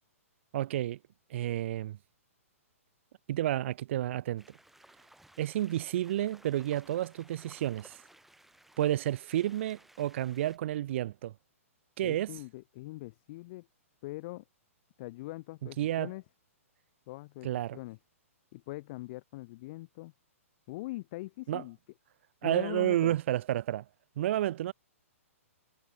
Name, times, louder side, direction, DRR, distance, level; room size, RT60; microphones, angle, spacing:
voice 1, 0.5-1.0 1.3-2.0 3.3-4.4 5.4-8.0 8.8-11.3 12.0-12.3 15.8-16.1 17.4-17.8 21.5-21.6 22.4-23.8 24.2-24.7, right 13 dB, 55° right, 0.4 m, -30 dB
sound 1, 4.4-10.6, right 1 dB, 5° right, 5.3 m, -59 dB
voice 2, 12.0-13.7 14.0-14.4 15.0-16.2 17.1-18.0 18.5-20.1 20.7-21.8 22.4-23.2, left 20 dB, 45° left, 1.9 m, -42 dB
hypercardioid pair, 125°, 8 cm